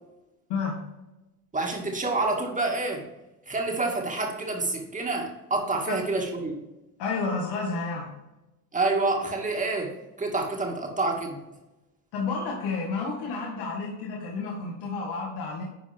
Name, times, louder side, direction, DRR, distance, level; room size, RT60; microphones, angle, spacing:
voice 1, 0.5-0.8 7.0-8.1 12.1-15.6, left 4 dB, 60° left, -2 dB, 1.9 m, -30 dB
voice 2, 1.5-3.1 3.5-6.5 8.7-11.4, right 3 dB, 15° right, 1 dB, 2.3 m, -28 dB
10.5 x 4.6 x 3.5 m, 1.0 s
supercardioid pair, 95°, 43 cm